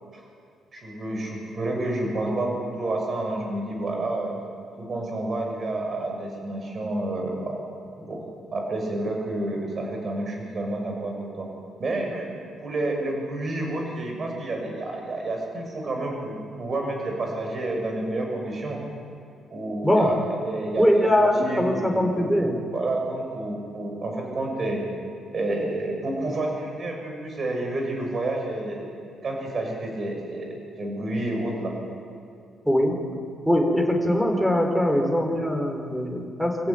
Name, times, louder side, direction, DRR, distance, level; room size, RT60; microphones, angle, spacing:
voice 1, 0.7-4.3 4.8-7.6 8.0-8.2 8.5-11.5 11.8-12.3 12.6-18.8 19.5-21.1 21.4-24.8 25.3-31.7, right 2 dB, 45° right, 1 dB, 6.5 m, -29 dB
voice 2, 20.8-22.6 32.7-33.0 33.4-36.7, equal, 5° right, 2 dB, 4.6 m, -22 dB
25.5 x 15.0 x 9.5 m, 2.5 s
cardioid pair, 90°, 0 cm